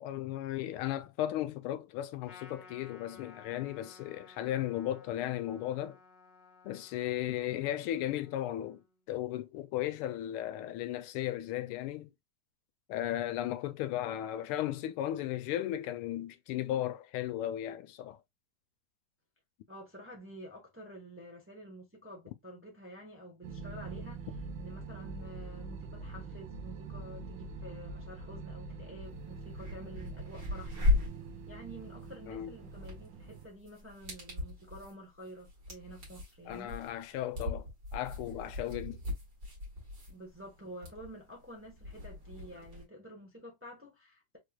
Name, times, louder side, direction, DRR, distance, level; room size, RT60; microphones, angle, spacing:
voice 1, 0.0-6.0 6.6-8.8 9.1-12.1 12.9-18.2 32.3-32.5 36.5-39.0, left 12 dB, 80° left, 1.4 m, -35 dB
Trumpet, 2.2-8.9, left 4 dB, 55° left, 1.7 m, -57 dB
voice 2, 19.7-24.3 24.6-30.8 31.5-36.9 40.1-44.4, right 1 dB, 10° right, 0.8 m, -49 dB
sound 1, 23.4-33.5, right 4 dB, 70° right, 1.4 m, -44 dB
sound 2, 29.0-29.1 29.5-42.8, left 2 dB, 45° right, 2.6 m, -37 dB
4.6 x 3.3 x 2.3 m
omnidirectional pair, 2.4 m